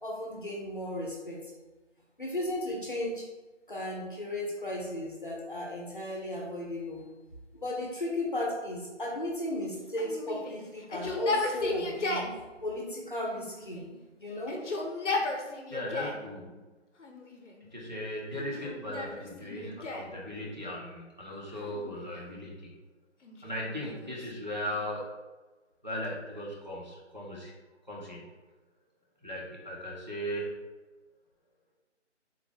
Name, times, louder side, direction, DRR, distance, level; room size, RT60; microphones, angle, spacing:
voice 1, 0.0-1.4 2.2-3.3 3.7-7.0 7.5-12.3 12.6-13.9 14.2-14.6, left 1 dB, 45° left, -2 dB, 0.7 m, -35 dB
Yell, 10.0-12.4 13.2-14.0 14.4-16.3 17.0-17.6 18.3-20.2 21.5-22.4 23.2-24.9, left 2 dB, 80° left, 0.7 m, -36 dB
voice 2, 15.7-16.6 17.7-22.7 23.4-25.1 25.8-27.5 27.9-28.3 29.2-30.5, equal, 40° right, -4 dB, 0.6 m, -37 dB
3.6 x 2.3 x 3.3 m, 1.2 s
figure-of-eight pair, 180°, 36 cm